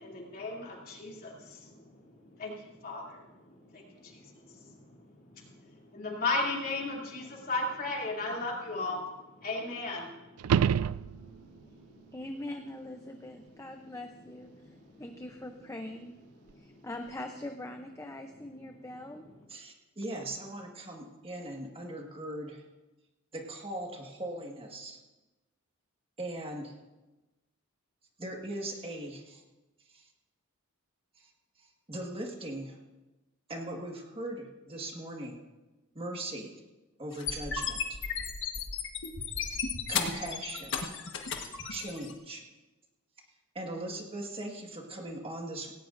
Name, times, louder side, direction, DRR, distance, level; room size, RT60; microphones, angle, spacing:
voice 1, 0.0-10.7 11.2-12.1 14.5-15.0 16.7-16.8, left 2 dB, 45° left, -2 dB, 2.8 m, -37 dB
sound 1, 10.4-11.6 16.5-16.6, right 8 dB, 85° right, 0.3 m, -27 dB
voice 2, 12.1-16.2 16.6-19.2, left 1 dB, 15° left, 4 dB, 0.6 m, -42 dB
voice 3, 19.5-22.6 23.3-25.0 26.2-26.8 28.2-29.4 29.9-30.1 31.2-31.3 31.6-32.8 33.5-35.4 36.0-36.6 37.0-38.0 39.9-40.8 41.7-42.4 43.6-45.7, right 1 dB, 25° right, 1 dB, 1.7 m, -39 dB
sound 2, 37.1-42.1, left 6 dB, 60° left, 1.4 m, -34 dB
17.5 x 17.5 x 2.6 m, 1.1 s
head